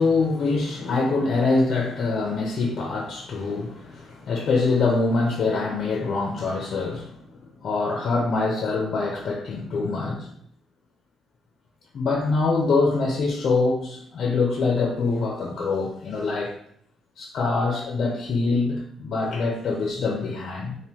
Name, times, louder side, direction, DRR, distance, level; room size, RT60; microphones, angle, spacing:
voice 1, 0.0-10.3 11.9-16.6 17.2-20.8, left 3 dB, 60° left, 0 dB, 0.5 m, -24 dB
3.4 x 2.2 x 2.8 m, 0.66 s
cardioid pair, 90°, 0 cm